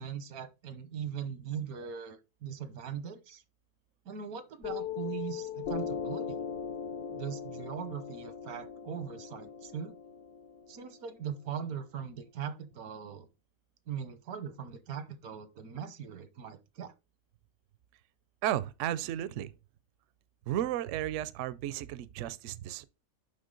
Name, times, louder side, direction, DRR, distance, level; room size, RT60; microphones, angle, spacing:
voice 1, 0.0-3.4 4.0-6.4 7.1-9.9 10.7-13.3 13.9-16.9, right 8 dB, 90° right, 1.4 m, -40 dB
Piano, 4.6-11.7, left 7 dB, 60° left, 0.5 m, -39 dB
voice 2, 18.4-19.5 20.5-22.8, right 12 dB, 70° right, 0.8 m, -33 dB
7.4 x 5.6 x 3.8 m
omnidirectional pair, 1.5 m